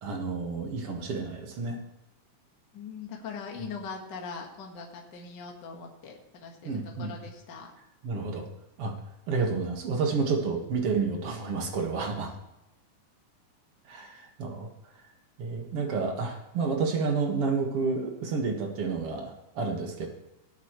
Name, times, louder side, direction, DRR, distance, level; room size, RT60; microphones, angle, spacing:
voice 1, 0.0-1.8 6.7-7.1 8.0-8.5 8.8-8.9 9.3-12.3 13.9-14.7 15.4-20.1, right 4 dB, 50° right, 2 dB, 2.3 m, -30 dB
voice 2, 2.7-6.6 7.0-7.7, left 5 dB, 40° left, 1 dB, 1.7 m, -41 dB
19.0 x 8.2 x 3.2 m, 0.93 s
omnidirectional pair, 3.9 m